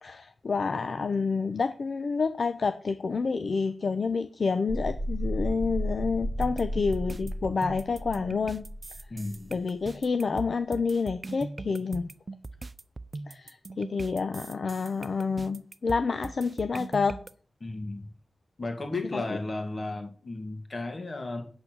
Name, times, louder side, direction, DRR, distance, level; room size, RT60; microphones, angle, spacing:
voice 1, 0.0-8.6 9.5-12.1 13.3-17.2 19.1-19.4, left 4 dB, 60° left, 9 dB, 0.7 m, -29 dB
sound 1, 4.7-9.3, equal, 20° left, 1.6 m, -33 dB
sound 2, 6.4-17.3, right 3 dB, 35° right, 0.5 m, -41 dB
voice 2, 9.1-9.5 17.6-18.1 18.6-21.5, left 2 dB, 35° left, 5 dB, 2.3 m, -34 dB
8.7 x 8.4 x 6.3 m, 0.43 s
wide cardioid pair, 120°, 0 cm